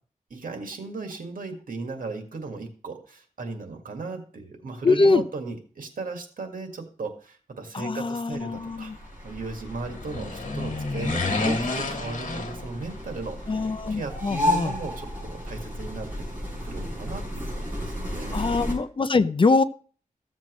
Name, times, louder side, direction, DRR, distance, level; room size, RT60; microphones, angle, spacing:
voice 1, 0.3-8.9 9.2-16.1 16.6-18.4, right 3 dB, 80° right, 3 dB, 1.9 m, -36 dB
voice 2, 4.8-5.2 7.7-9.0 13.5-14.7 18.3-19.6, left 3 dB, 40° left, 13 dB, 0.5 m, -23 dB
sound 1, 8.3-18.7, equal, 10° right, 6.1 m, -33 dB
sound 2, 9.8-13.2 13.4-13.5, left 3 dB, 65° left, 1.9 m, -29 dB
14.5 x 7.5 x 3.1 m, 0.42 s
wide cardioid pair, 130°, 14 cm